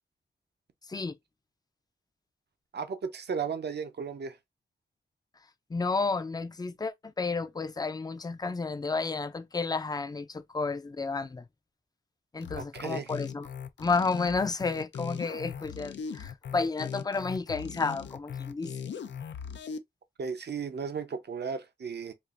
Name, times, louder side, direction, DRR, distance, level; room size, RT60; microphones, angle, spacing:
voice 1, 2.7-4.4 12.6-13.2 20.2-22.1, right 6 dB, 65° right, 0.7 m, -35 dB
voice 2, 5.7-11.4 12.3-13.5 13.8-18.7, left 4 dB, 20° left, 0.4 m, -31 dB
sound 1, 12.4-19.8, left 7 dB, 75° left, 0.5 m, -39 dB
4.5 x 2.5 x 2.4 m
wide cardioid pair, 75°, 18 cm